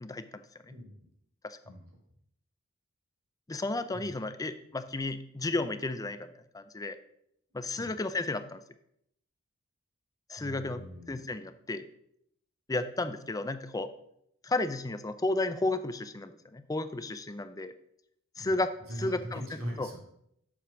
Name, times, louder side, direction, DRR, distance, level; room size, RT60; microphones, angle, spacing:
voice 1, 3.5-7.0 7.5-8.6 10.3-10.8 11.1-11.8 12.7-13.9 14.4-17.7 18.4-18.7 19.0-19.4 19.8-19.9, left 2 dB, 15° left, 11 dB, 0.5 m, -33 dB
voice 2, 10.4-11.2 18.4-20.0, equal, 70° right, -1 dB, 2.9 m, -41 dB
7.5 x 5.1 x 6.0 m, 0.73 s
head